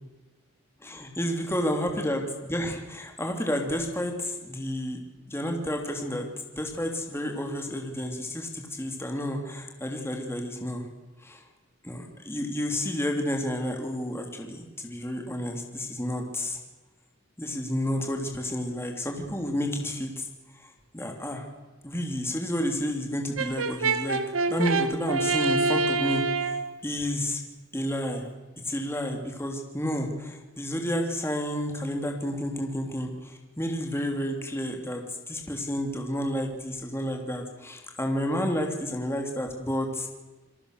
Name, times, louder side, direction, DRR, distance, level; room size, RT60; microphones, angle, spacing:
voice 1, 0.8-5.0 5.3-6.3 6.5-10.8 11.2-11.4 11.8-16.6 17.4-20.3 20.5-20.7 20.9-21.5 21.8-24.2 24.5-26.6 26.8-27.4 27.7-28.3 28.6-40.1, equal, 10° left, 2 dB, 3.2 m, -30 dB
Brass instrument, 23.4-26.7, right 3 dB, 85° right, 1.6 m, -26 dB
28.0 x 22.5 x 6.8 m, 1.2 s
head